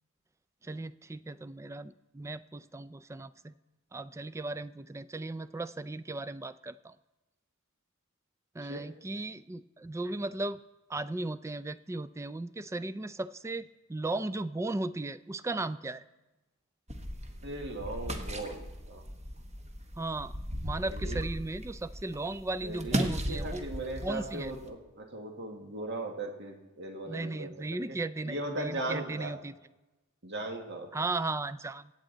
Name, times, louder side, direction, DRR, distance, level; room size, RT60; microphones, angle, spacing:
voice 1, 0.6-3.5 3.9-7.0 8.5-10.6 10.9-16.1 20.0-20.4 20.6-23.6 24.0-24.5 27.1-29.5 30.9-31.9, right 2 dB, 15° right, 15 dB, 0.3 m, -36 dB
sound 1, 16.9-24.7, equal, 30° right, 1.2 m, -37 dB
voice 2, 17.4-19.0 20.9-21.2 22.6-28.0 28.2-29.3 30.2-30.9, right 1 dB, 55° right, 3 dB, 1.7 m, -38 dB
25.0 x 8.8 x 3.9 m, 1.0 s
head